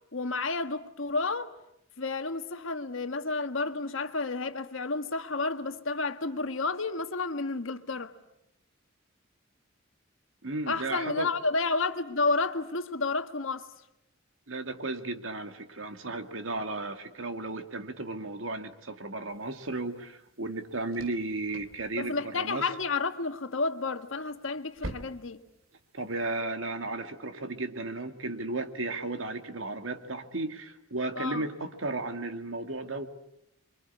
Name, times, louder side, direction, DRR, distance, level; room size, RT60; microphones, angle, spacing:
voice 1, 0.1-1.5 2.0-8.1 10.7-13.7 22.0-25.4 31.1-31.5, left 3 dB, 70° left, 1.5 m, -31 dB
voice 2, 10.4-11.3 14.5-22.7 25.9-33.1, right 2 dB, 70° right, 2.1 m, -34 dB
sound 1, 19.3-26.4, right 1 dB, 90° right, 2.7 m, -48 dB
27.5 x 24.0 x 8.5 m
head